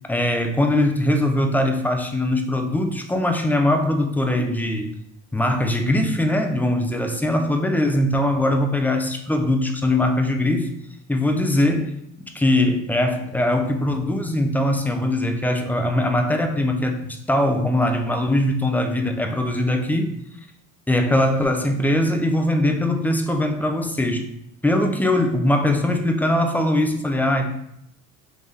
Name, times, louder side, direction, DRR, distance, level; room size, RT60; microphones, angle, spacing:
voice 1, 0.1-4.9 5.3-10.7 11.1-11.9 12.2-20.1 20.9-24.3 24.6-27.5, left 1 dB, 5° left, 5 dB, 0.3 m, -21 dB
3.6 x 2.5 x 3.3 m, 0.75 s
supercardioid pair, 85°, 42 cm